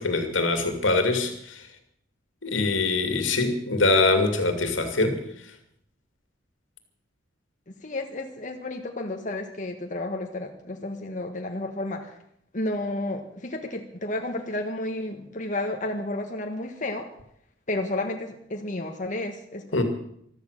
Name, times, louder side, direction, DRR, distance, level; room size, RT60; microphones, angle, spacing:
voice 1, 0.0-1.6 2.4-5.2 19.7-19.8, left 3 dB, 85° left, 7 dB, 2.6 m, -23 dB
voice 2, 7.8-12.2 12.5-17.1 17.7-19.8, left 2 dB, 40° left, 3 dB, 1.5 m, -31 dB
15.0 x 13.0 x 6.6 m, 0.71 s
head